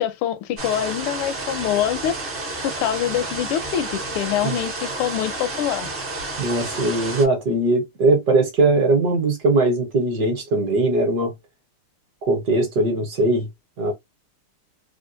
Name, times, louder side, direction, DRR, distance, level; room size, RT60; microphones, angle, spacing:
voice 1, 0.0-2.1 2.6-5.9, left 11 dB, 85° left, 1.4 m, -25 dB
sound 1, 0.6-7.3, right 2 dB, 45° right, 0.7 m, -30 dB
voice 2, 6.4-11.3 12.2-13.5 13.8-13.9, right 2 dB, 60° right, 1.2 m, -20 dB
3.6 x 2.3 x 2.6 m
omnidirectional pair, 2.3 m